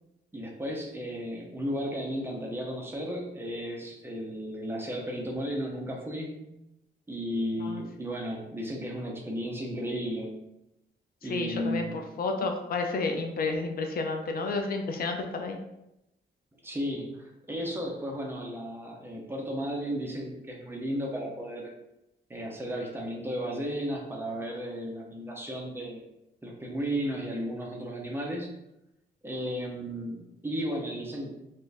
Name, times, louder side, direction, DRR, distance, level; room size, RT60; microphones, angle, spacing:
voice 1, 0.3-6.5 7.1-10.3 11.2-12.0 16.6-21.7 22.3-26.1 26.4-28.5 29.2-31.3, equal, 10° right, 0 dB, 0.6 m, -34 dB
voice 2, 11.3-11.9 12.2-15.6, left 3 dB, 55° left, 4 dB, 0.4 m, -31 dB
4.2 x 2.5 x 3.3 m, 0.88 s
wide cardioid pair, 160°, 19 cm